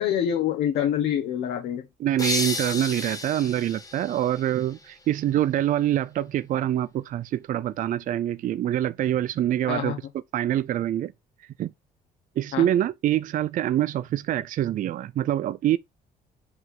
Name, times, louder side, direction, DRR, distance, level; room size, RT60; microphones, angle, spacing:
voice 1, 0.0-1.9 9.7-10.0 12.5-12.7, left 9 dB, 70° left, 1.4 m, -26 dB
voice 2, 2.0-10.0 10.3-11.1 11.6-11.7 12.4-15.8, right 12 dB, 50° right, 0.5 m, -25 dB
sound 1, 2.2-5.0, left 3 dB, 20° left, 1.9 m, -32 dB
7.9 x 3.1 x 5.4 m
cardioid pair, 110°, 17 cm